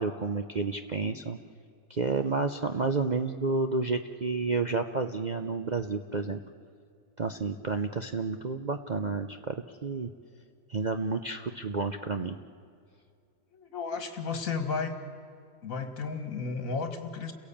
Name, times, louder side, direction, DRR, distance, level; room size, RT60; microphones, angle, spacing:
voice 1, 0.0-1.4 1.9-6.4 7.2-10.1 10.7-12.4, right 4 dB, 55° right, 5 dB, 0.4 m, -30 dB
voice 2, 13.5-15.0 15.6-17.3, left 4 dB, 55° left, 7 dB, 2.3 m, -33 dB
29.0 x 17.0 x 8.6 m, 2.3 s
omnidirectional pair, 1.8 m